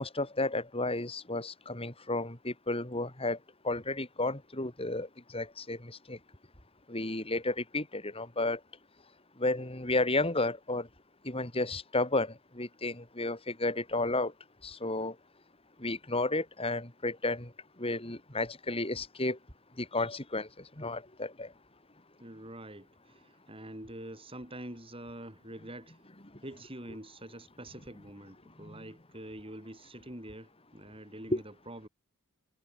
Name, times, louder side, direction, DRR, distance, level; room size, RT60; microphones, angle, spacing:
voice 1, 0.0-3.4 3.6-5.1 5.3-5.8 6.1-6.2 6.9-8.6 9.4-10.9 11.3-14.3 14.6-15.1 15.8-17.5 17.8-19.4 19.8-20.5 20.8-21.5 31.3-31.4, left 2 dB, 25° left, 3.7 m, -32 dB
voice 2, 22.2-26.0 26.4-31.9, right 1 dB, 25° right, 5.4 m, -46 dB
head